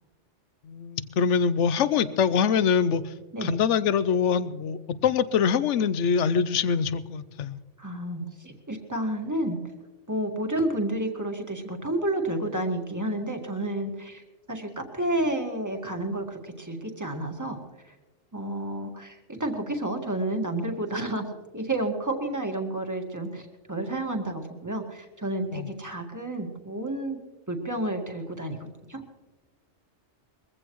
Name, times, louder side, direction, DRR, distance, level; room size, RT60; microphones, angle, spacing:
voice 1, 0.7-3.0 3.4-7.6 25.5-25.7, left 6 dB, 80° left, 15 dB, 1.0 m, -24 dB
voice 2, 7.8-9.6 10.1-14.2 14.5-17.6 18.3-21.3 21.5-27.2 27.5-29.0, right 1 dB, 15° right, 3 dB, 1.7 m, -30 dB
22.0 x 15.5 x 3.1 m, 1.2 s
omnidirectional pair, 1.2 m